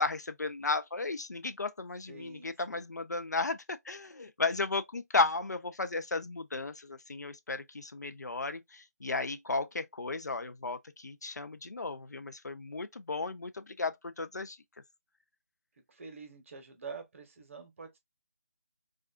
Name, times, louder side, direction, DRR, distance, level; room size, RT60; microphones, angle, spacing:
voice 1, 0.0-14.6, left 3 dB, 90° left, 0.4 m, -34 dB
voice 2, 2.1-2.8 15.9-18.0, right 5 dB, 50° right, 0.9 m, -47 dB
2.4 x 2.3 x 2.3 m
figure-of-eight pair, 150°, 9 cm